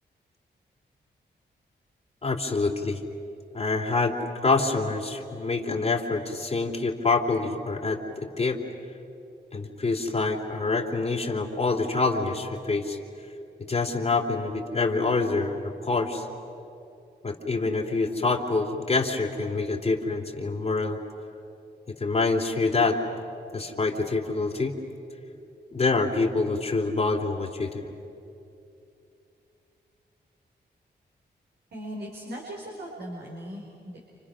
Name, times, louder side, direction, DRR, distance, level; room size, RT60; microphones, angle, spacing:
voice 1, 2.2-3.0 3.5-4.1 4.4-8.6 9.5-13.0 13.7-16.3 17.2-21.0 22.0-23.0 23.5-24.8 25.7-27.8, left 3 dB, 35° left, 0 dB, 2.9 m, -26 dB
voice 2, 31.7-34.0, equal, 70° right, -2 dB, 5.0 m, -38 dB
30.0 x 29.0 x 6.3 m, 2.7 s
cardioid pair, 70°, 18 cm